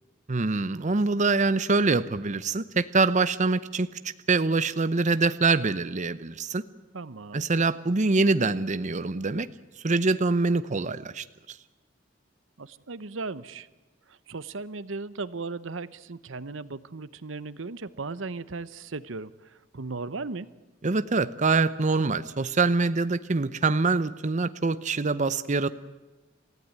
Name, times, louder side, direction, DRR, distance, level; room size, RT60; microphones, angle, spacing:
voice 1, 0.3-3.9 4.3-6.6 7.3-9.5 9.8-11.6 20.8-25.7, right 3 dB, 40° right, 12 dB, 0.7 m, -24 dB
voice 2, 6.9-7.5 12.6-13.7 14.1-20.5, right 3 dB, 75° right, 15 dB, 0.9 m, -37 dB
28.5 x 15.0 x 9.6 m, 1.2 s
head